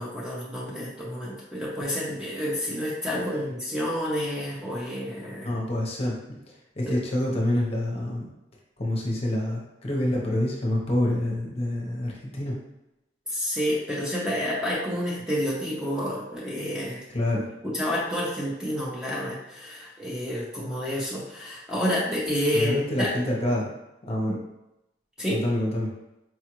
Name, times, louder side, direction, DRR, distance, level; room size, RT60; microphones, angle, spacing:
voice 1, 0.0-5.5 6.8-6.9 13.3-17.0 17.6-23.1 24.3-24.4 25.2-25.4, equal, 5° right, -6 dB, 0.6 m, -29 dB
voice 2, 3.1-3.5 5.4-6.2 6.5-8.3 8.8-12.6 17.1-17.5 22.5-23.7 24.0-24.4 25.3-25.9, left 1 dB, 35° left, -2 dB, 0.7 m, -27 dB
4.5 x 2.4 x 3.0 m, 0.90 s
head